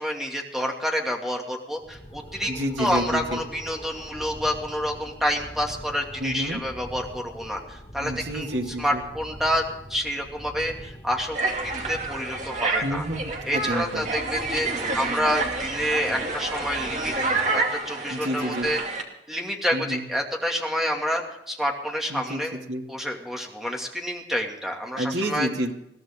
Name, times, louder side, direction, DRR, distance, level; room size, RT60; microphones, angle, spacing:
voice 1, 0.0-2.5 2.8-8.5 8.8-9.6 9.9-11.4 11.6-13.0 13.5-17.1 17.5-18.8 19.3-22.6 22.9-25.5, equal, ahead, 0 dB, 2.4 m, -28 dB
sound 1, 1.8-17.8, equal, 30° left, 2.8 m, -43 dB
voice 2, 2.5-3.4 6.2-6.6 8.0-9.0 12.8-14.1 18.1-18.7 19.7-20.0 22.1-22.8 25.0-25.7, equal, 85° right, 2 dB, 2.3 m, -29 dB
sound 2, 11.3-19.0, right 3 dB, 40° right, 2.5 m, -29 dB
21.5 x 16.0 x 3.7 m, 0.82 s
head